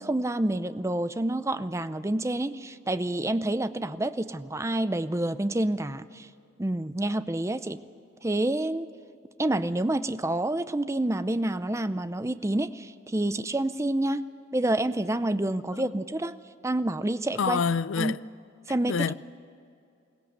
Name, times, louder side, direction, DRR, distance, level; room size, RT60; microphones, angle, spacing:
voice 1, 0.0-6.3 6.6-7.8 8.2-8.9 9.4-14.2 14.5-16.4 16.6-17.6 18.0-18.2 18.7-19.1, right 1 dB, 15° right, 0.5 m, -28 dB
voice 2, 17.4-18.2 18.9-19.1, left 6 dB, 85° left, 0.4 m, -27 dB
22.0 x 17.5 x 8.0 m
head